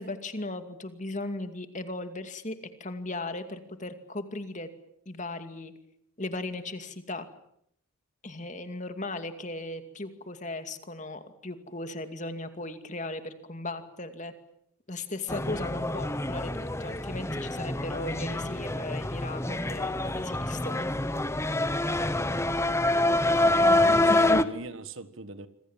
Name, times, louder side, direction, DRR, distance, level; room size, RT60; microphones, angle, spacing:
voice 1, 0.0-4.7 5.1-5.7 6.2-7.3 8.2-14.3 14.9-20.9 23.6-24.4, left 2 dB, 35° left, 2.5 m, -37 dB
sound 1, 15.3-24.4, left 2 dB, 15° left, 1.0 m, -26 dB
voice 2, 23.3-25.5, right 2 dB, 65° right, 1.6 m, -40 dB
26.5 x 26.0 x 7.4 m
head